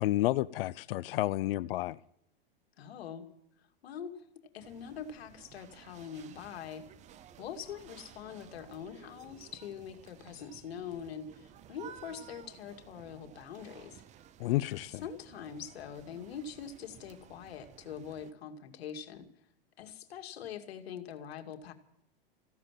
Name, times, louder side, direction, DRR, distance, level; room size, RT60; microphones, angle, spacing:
voice 1, 0.0-2.0 14.4-15.0, left 16 dB, 65° left, 0.6 m, -30 dB
voice 2, 2.8-3.3 3.8-4.2 4.5-6.8 7.4-14.0 15.0-19.3 19.8-21.7, left 7 dB, 85° left, 2.3 m, -43 dB
sound 1, 4.6-18.3, right 10 dB, 25° right, 0.7 m, -55 dB
16.0 x 12.0 x 7.5 m
supercardioid pair, 145°, 30 cm